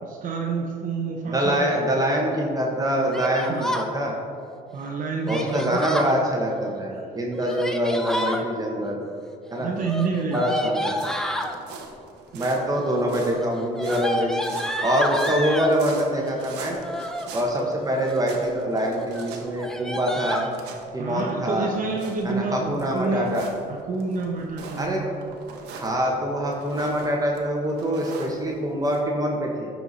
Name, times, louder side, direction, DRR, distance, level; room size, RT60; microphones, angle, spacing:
voice 1, 0.0-1.7 3.4-3.7 4.7-5.9 9.6-10.5 12.3-12.4 21.0-23.3 23.7-25.3, right 4 dB, 50° right, 0 dB, 0.9 m, -28 dB
voice 2, 1.3-4.1 5.3-9.0 9.5-9.7 10.3-11.0 12.3-16.8 17.3-20.5 20.9-21.7 22.2-23.4 24.8-25.1 25.7-29.7, equal, 20° right, -1 dB, 1.2 m, -24 dB
Yell, 3.1-3.9 5.3-6.2 7.3-8.4 9.7-11.5 12.4-12.8 13.1-15.8 16.7-17.3 17.8-18.4 18.7-18.9 19.1-19.3 19.6-20.5, equal, 5° left, 0.7 m, -30 dB
sound 1, 10.9-29.0, right 4 dB, 85° right, 1.1 m, -43 dB
13.0 x 4.6 x 4.1 m, 2.3 s
cardioid pair, 110°, 17 cm